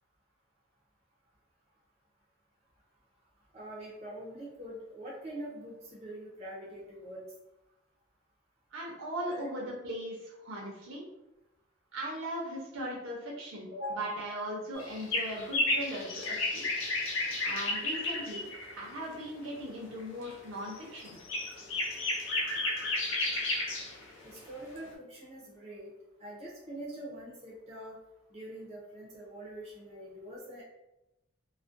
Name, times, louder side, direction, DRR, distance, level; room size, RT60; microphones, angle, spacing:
voice 1, 3.5-7.2 9.3-9.4 13.7-14.1 24.2-25.9 26.2-28.0 28.3-30.6, equal, 30° right, -5 dB, 0.5 m, -43 dB
voice 2, 8.7-11.0 11.9-16.6 17.4-18.5 18.8-21.2, equal, 70° right, -3 dB, 0.7 m, -38 dB
sound 1, 14.7-18.8 20.0-20.3 20.7-24.1 24.4-24.5 24.8-24.9, left 2 dB, 65° left, 0.5 m, -32 dB
2.4 x 2.1 x 2.5 m, 0.93 s
head